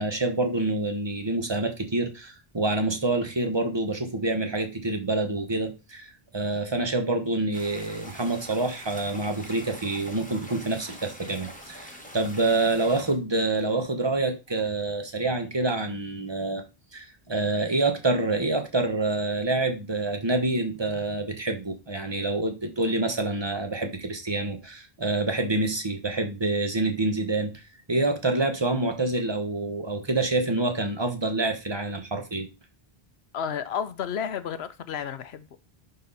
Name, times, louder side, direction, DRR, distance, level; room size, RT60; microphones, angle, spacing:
voice 1, 0.0-16.6 16.9-27.5 27.9-32.5, right 2 dB, 25° right, 1.1 m, -27 dB
sound 1, 7.5-13.2, equal, 10° left, 1.3 m, -44 dB
voice 2, 33.3-35.6, left 8 dB, 80° left, 1.0 m, -32 dB
11.0 x 3.8 x 4.1 m
omnidirectional pair, 1.0 m